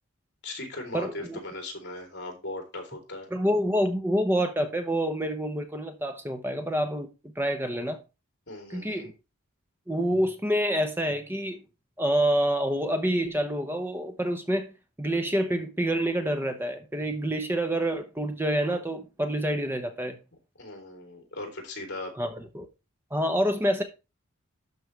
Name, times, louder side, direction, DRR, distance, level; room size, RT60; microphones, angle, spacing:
voice 1, 0.4-3.3 8.5-9.1 20.6-22.1, left 2 dB, 55° left, 3.5 m, -38 dB
voice 2, 0.9-1.4 3.3-8.0 8.7-9.1 9.9-11.6 12.0-14.7 15.0-20.2 22.2-22.7 23.1-23.8, equal, 10° right, 0.9 m, -27 dB
12.5 x 5.5 x 3.3 m
head